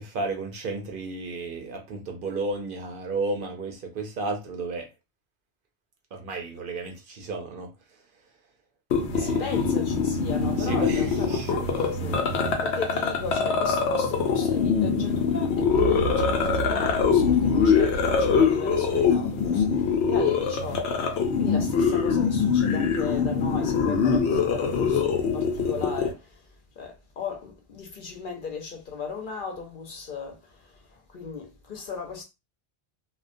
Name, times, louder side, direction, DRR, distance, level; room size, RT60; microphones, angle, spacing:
voice 1, 0.0-4.9 6.1-7.7 9.1-9.5 10.6-11.5, right 3 dB, 60° right, 0.7 m, -33 dB
sound 1, 8.9-26.1, left 5 dB, 85° left, 0.9 m, -23 dB
voice 2, 9.2-12.3 12.6-26.5 26.8-32.2, left 5 dB, 55° left, 0.8 m, -37 dB
sound 2, 15.7-18.4, right 4 dB, 80° right, 1.0 m, -32 dB
2.3 x 2.2 x 2.5 m
omnidirectional pair, 1.1 m